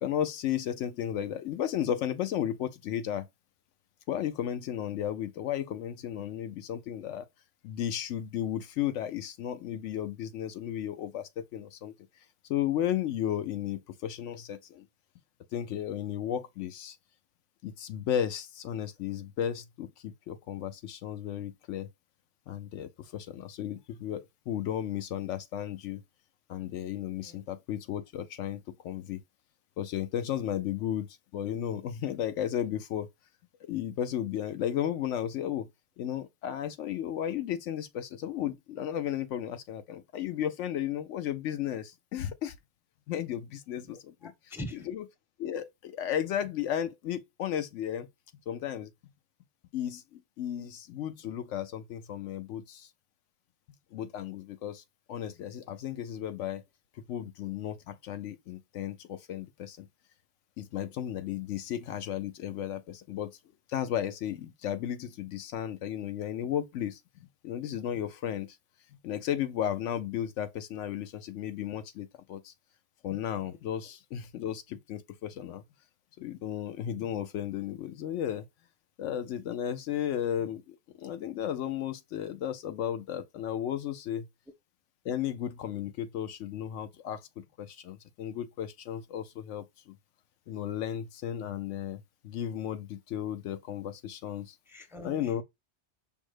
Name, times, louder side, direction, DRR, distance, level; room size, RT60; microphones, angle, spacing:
voice 1, 0.0-3.3 4.1-7.3 7.6-11.9 12.5-14.9 15.5-17.0 17.6-21.9 22.5-26.0 26.5-29.2 29.8-31.1 31.3-33.1 33.6-35.7 36.0-42.5 43.1-44.3 44.7-45.1 45.4-48.1 48.5-48.9 49.7-52.9 53.9-54.8 55.1-56.6 57.0-59.9 60.6-63.3 63.7-68.6 69.0-72.5 73.0-75.6 76.2-78.5 79.0-84.3 85.0-90.0 90.5-94.5 95.0-95.4, left 10 dB, 80° left, 0.9 m, -34 dB
voice 2, 43.9-44.9 50.6-50.7 51.2-51.4 94.7-95.4, left 1 dB, 5° right, 0.5 m, -44 dB
5.4 x 2.1 x 4.7 m
omnidirectional pair, 1.2 m